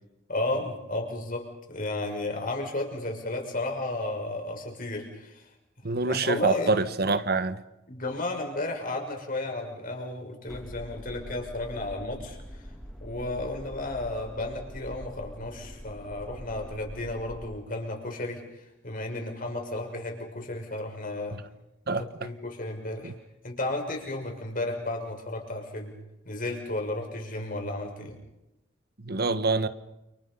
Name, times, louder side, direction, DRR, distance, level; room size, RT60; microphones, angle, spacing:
voice 1, 0.3-5.5 5.9-6.7 7.9-12.7 13.0-21.4 21.9-23.1 23.4-25.9 26.2-28.2, left 2 dB, 45° left, 6.5 m, -33 dB
voice 2, 5.8-7.6 21.3-21.4 21.9-22.3 23.0-23.1 29.0-29.7, right 3 dB, 55° right, 1.3 m, -26 dB
sound 1, 10.5-17.5, equal, ahead, 5.4 m, -44 dB
29.5 x 29.5 x 5.6 m
head